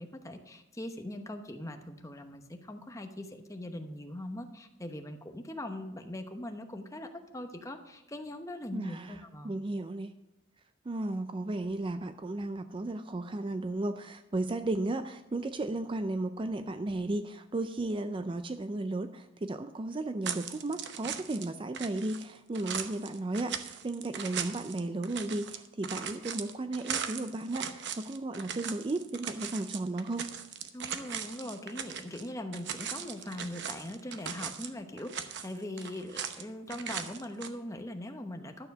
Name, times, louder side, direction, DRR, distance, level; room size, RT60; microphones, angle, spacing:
voice 1, 0.0-9.6 30.7-38.7, left 1 dB, 15° left, 6 dB, 0.9 m, -41 dB
voice 2, 8.7-10.1 10.9-30.3, right 2 dB, 25° right, 10 dB, 0.4 m, -34 dB
sound 1, 20.2-21.5 21.7-32.3 32.5-34.7 35.0-36.4 36.7-37.5, right 8 dB, 60° right, 0.8 m, -39 dB
12.0 x 7.0 x 6.5 m, 0.96 s
head